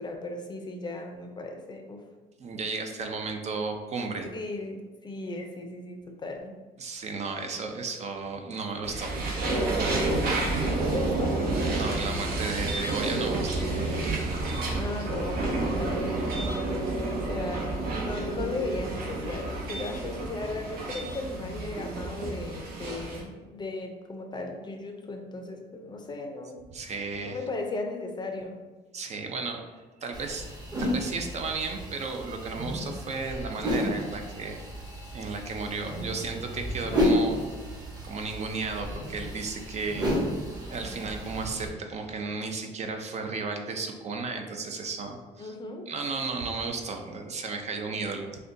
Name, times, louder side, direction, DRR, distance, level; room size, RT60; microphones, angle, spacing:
voice 1, 0.0-2.0 4.3-6.6 10.8-11.4 14.8-16.2 17.1-26.6 27.2-28.6 40.3-40.4 40.8-41.1 45.4-45.9, left 2 dB, 25° left, 3 dB, 0.5 m, -36 dB
voice 2, 2.4-4.3 6.8-9.3 11.7-13.8 26.7-27.4 28.9-29.6 30.0-30.5 30.8-34.6 35.1-37.4 38.0-40.1 40.7-45.5 45.9-48.3, right 4 dB, 40° right, 4 dB, 0.5 m, -34 dB
sound 1, 8.8-23.2, right 2 dB, 60° right, 0.9 m, -30 dB
sound 2, 30.1-41.7, equal, 25° right, 1.1 m, -32 dB
6.4 x 2.2 x 2.6 m, 1.3 s
cardioid pair, 110°, 17 cm